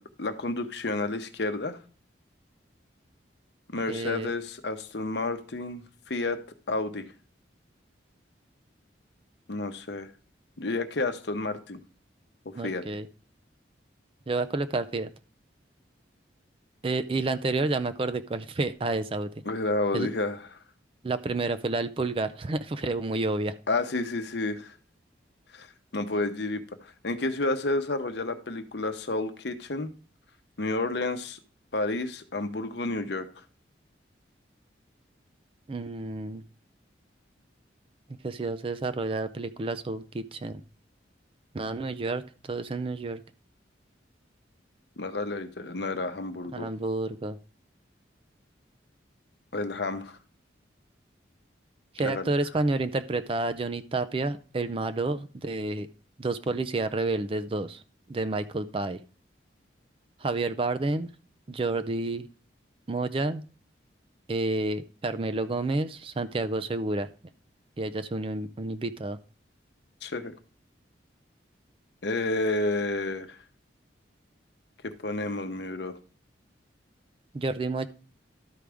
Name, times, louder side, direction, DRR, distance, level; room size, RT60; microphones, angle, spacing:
voice 1, 0.0-1.8 3.7-5.8 6.1-6.4 6.7-7.0 9.5-10.1 10.6-11.8 12.4-12.8 19.5-20.4 23.7-24.7 25.5-25.7 25.9-29.9 30.6-31.4 31.7-33.3 45.0-46.7 49.5-50.2 52.0-52.3 70.0-70.3 72.0-73.4 74.8-75.9, left 2 dB, 60° left, 8 dB, 0.9 m, -30 dB
voice 2, 3.9-4.3 12.5-13.1 14.3-15.1 16.8-19.3 19.9-20.1 21.0-23.6 35.7-36.4 38.2-40.6 41.5-43.2 46.5-47.4 51.9-55.9 56.2-57.8 58.1-59.0 60.2-61.1 61.5-62.3 62.9-63.4 64.3-67.1 67.8-69.2 77.3-77.9, right 2 dB, 30° right, 11 dB, 0.4 m, -30 dB
12.5 x 4.9 x 3.4 m, 0.39 s
head